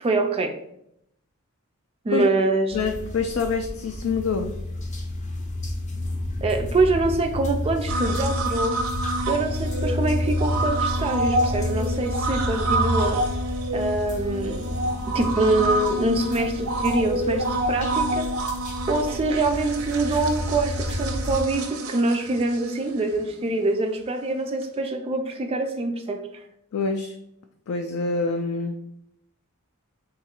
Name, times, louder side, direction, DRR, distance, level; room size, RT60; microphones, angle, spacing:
voice 1, 0.0-0.6 2.0-2.8 6.4-8.8 9.3-13.2 13.7-14.8 15.1-18.3 18.9-26.3, right 2 dB, 25° right, 5 dB, 0.3 m, -24 dB
voice 2, 2.7-4.6 26.7-27.1 27.7-28.8, left 4 dB, 75° left, 4 dB, 0.4 m, -26 dB
sound 1, 2.7-21.4, left 1 dB, 35° left, 0.6 m, -30 dB
sound 2, 7.9-23.2 24.6-24.7, right 1 dB, 90° right, 0.6 m, -28 dB
3.8 x 2.4 x 4.2 m, 0.76 s
head